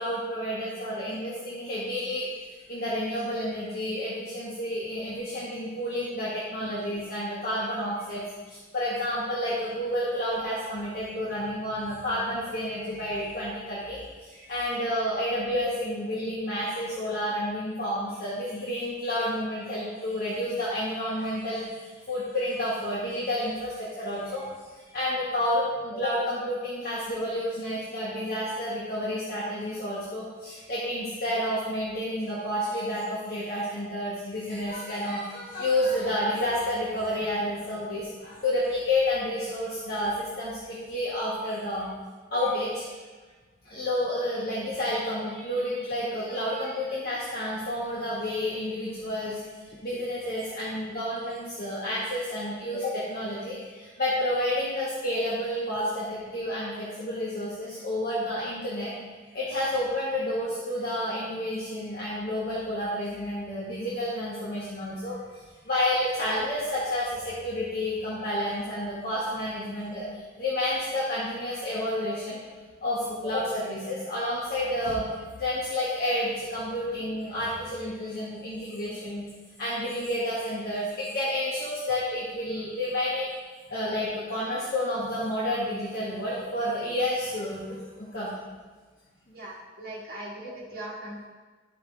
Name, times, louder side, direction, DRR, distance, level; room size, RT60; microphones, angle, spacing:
voice 1, 0.0-24.4 24.9-41.9 42.3-42.8 43.6-49.4 49.8-58.9 59.2-72.4 72.8-79.2 79.6-83.3 83.7-88.3, left 1 dB, 50° left, -9 dB, 1.7 m, -30 dB
voice 2, 89.3-91.2, right 1 dB, 50° right, -5 dB, 1.8 m, -39 dB
13.0 x 5.0 x 3.4 m, 1.4 s
head